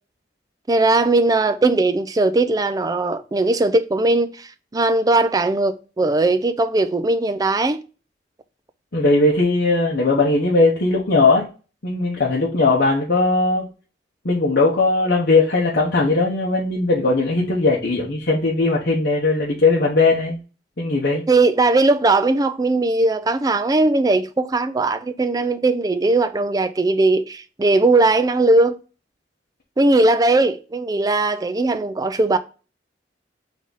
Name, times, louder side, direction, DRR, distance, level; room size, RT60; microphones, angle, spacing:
voice 1, 0.7-7.8 21.3-28.8 29.8-32.4, right 2 dB, 20° right, 0.4 m, -19 dB
voice 2, 8.9-11.5 11.8-13.7 14.2-20.4 20.8-21.2, left 3 dB, 60° left, 0.9 m, -18 dB
3.9 x 3.5 x 3.9 m
head